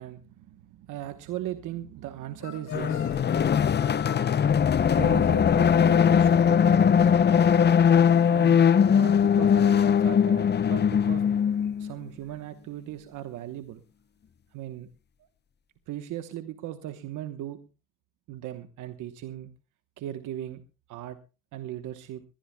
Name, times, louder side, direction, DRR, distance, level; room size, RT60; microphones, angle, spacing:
voice 1, 0.0-3.7 4.9-7.1 8.3-11.3 11.8-13.8 14.5-14.9 15.9-17.7 18.3-19.5 20.0-20.6 20.9-21.2 21.5-22.2, right 12 dB, 90° right, 9 dB, 1.1 m, -38 dB
sound 1, 2.4-4.5, left 8 dB, 75° left, 6.1 m, -42 dB
sound 2, 2.7-11.9, left 7 dB, 35° left, 0.6 m, -20 dB
22.0 x 17.5 x 2.2 m, 0.32 s
cardioid pair, 90°, 30 cm